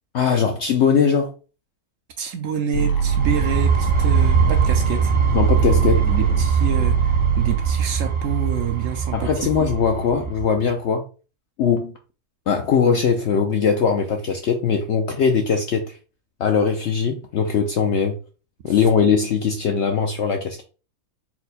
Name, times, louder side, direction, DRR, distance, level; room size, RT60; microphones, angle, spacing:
voice 1, 0.1-1.3 5.3-6.0 9.1-11.0 11.6-11.9 12.5-15.8 16.4-18.2 18.6-20.6, left 6 dB, 65° left, 0.7 m, -20 dB
voice 2, 2.2-5.1 5.9-9.3 18.6-18.7, right 7 dB, 65° right, 0.9 m, -27 dB
sound 1, 2.7-8.7, right 6 dB, 85° left, 1.3 m, -22 dB
sound 2, 2.9-10.6, right 6 dB, 40° right, 0.4 m, -22 dB
4.4 x 2.1 x 4.1 m
omnidirectional pair, 1.6 m